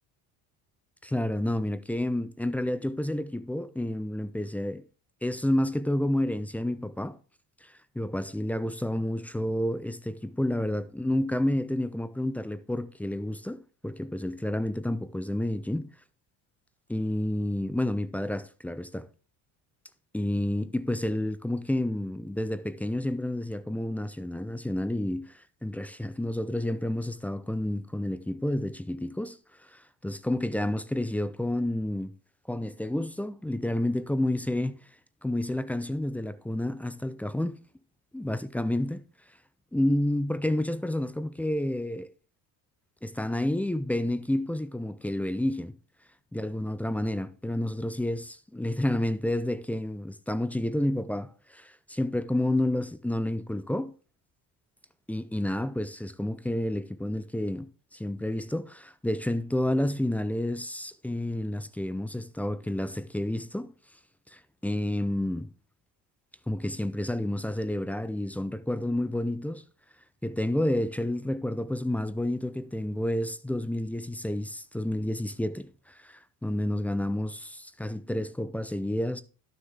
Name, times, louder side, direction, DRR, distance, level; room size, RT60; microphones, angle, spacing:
voice 1, 1.0-4.8 5.2-7.2 7.6-13.6 13.8-15.9 16.9-19.1 20.1-25.3 25.6-29.4 29.7-32.1 32.5-34.8 35.2-37.6 38.1-39.0 39.7-42.1 43.0-45.7 46.3-53.9 55.1-57.7 57.9-63.7 64.3-65.5 66.5-69.6 70.2-79.2, left 1 dB, 5° left, 0.4 m, -30 dB
11.5 x 6.5 x 3.5 m
cardioid pair, 125°, 39 cm